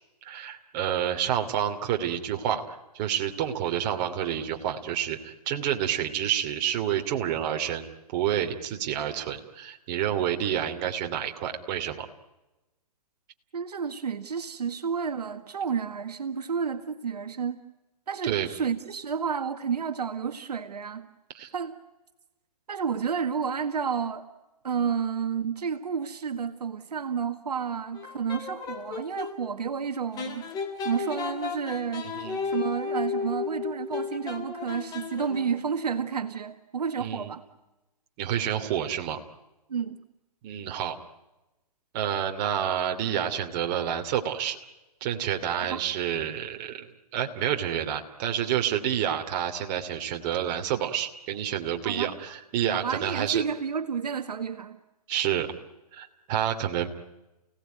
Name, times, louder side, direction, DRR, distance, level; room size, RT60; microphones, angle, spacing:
voice 1, 0.2-12.1 18.2-18.5 21.3-21.5 32.0-32.4 37.0-37.3 38.2-39.2 40.4-41.0 41.9-44.6 45.0-46.9 47.1-53.4 55.1-55.5 55.9-56.9, right 10 dB, 35° right, 2.8 m, -29 dB
voice 2, 13.5-17.6 18.1-21.1 21.5-21.7 22.7-24.3 24.6-30.5 30.8-32.1 32.5-37.4 39.7-40.0 45.6-45.8 51.8-52.1 52.7-54.8, right 6 dB, 75° right, 1.8 m, -31 dB
sound 1, 27.9-29.4 30.2-35.6, left 5 dB, 20° left, 3.3 m, -34 dB
30.0 x 18.5 x 9.3 m
hypercardioid pair, 135°, 21 cm